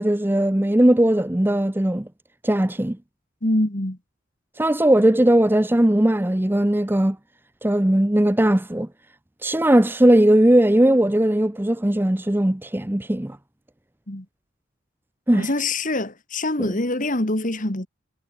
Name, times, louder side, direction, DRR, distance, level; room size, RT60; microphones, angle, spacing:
voice 1, 0.0-2.1 2.4-3.0 4.6-7.2 7.6-8.9 9.4-13.4 15.3-15.5 16.6-16.7, right 1 dB, 10° right, 0.6 m, -18 dB
voice 2, 3.4-4.0 14.1-14.3 15.3-17.9, left 2 dB, 40° left, 2.3 m, -24 dB
head